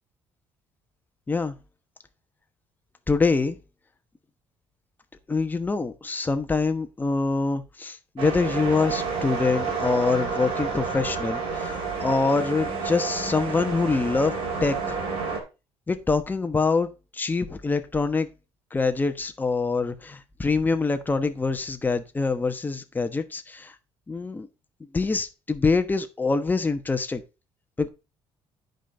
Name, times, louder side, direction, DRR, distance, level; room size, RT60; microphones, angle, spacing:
voice 1, 3.1-3.6 5.3-14.3 14.6-14.9 15.9-18.3 18.7-23.7 24.1-24.5 24.9-27.2 27.8-27.9, left 4 dB, 20° left, 8 dB, 1.1 m, -25 dB
sound 1, 8.2-15.4, right 4 dB, 75° right, 3.0 m, -30 dB
10.0 x 5.3 x 4.0 m, 0.28 s
cardioid pair, 105°, 10 cm